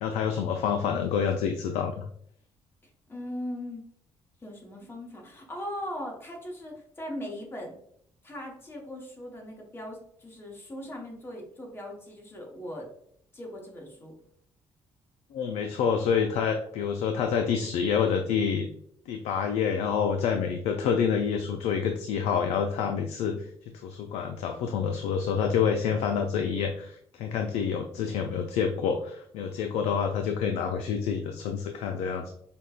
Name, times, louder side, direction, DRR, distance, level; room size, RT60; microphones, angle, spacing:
voice 1, 0.0-2.0 15.3-18.7 19.1-23.4 23.8-32.3, left 7 dB, 85° left, 4 dB, 0.4 m, -27 dB
voice 2, 3.1-3.9 4.4-7.7 8.2-12.9 13.3-14.1, left 1 dB, 20° left, 0 dB, 1.0 m, -39 dB
5.1 x 2.2 x 2.4 m, 0.66 s
cardioid pair, 115°, 10 cm